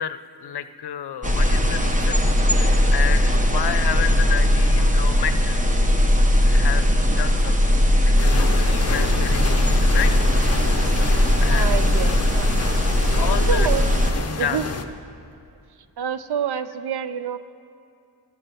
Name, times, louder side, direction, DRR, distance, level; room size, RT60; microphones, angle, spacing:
voice 1, 0.0-2.3 2.5-5.6 6.4-6.9 7.2-10.1 10.4-11.1 11.4-11.7 13.2-13.7 14.4-14.6, left 9 dB, 85° left, 12 dB, 0.6 m, -31 dB
sound 1, 1.2-14.1, left 1 dB, 20° right, 0.8 m, -19 dB
geneva lake boat on departure from lausanne, 8.2-14.9, left 5 dB, 40° left, 0.7 m, -29 dB
voice 2, 11.5-12.5 13.2-13.8 14.4-14.6 16.0-17.4, right 8 dB, 80° right, 12 dB, 0.6 m, -27 dB
14.5 x 7.5 x 6.7 m, 2.5 s
wide cardioid pair, 120°, 39 cm